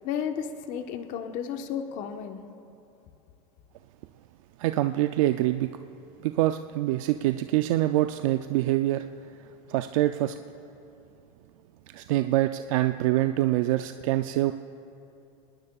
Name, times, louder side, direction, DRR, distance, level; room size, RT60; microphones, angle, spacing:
voice 1, 0.0-2.4, left 8 dB, 45° left, 6 dB, 1.2 m, -33 dB
voice 2, 4.6-5.7 6.2-10.4 11.9-14.5, right 15 dB, 70° right, 8 dB, 0.5 m, -25 dB
28.5 x 20.0 x 2.4 m, 2.7 s
supercardioid pair, 140°, 18 cm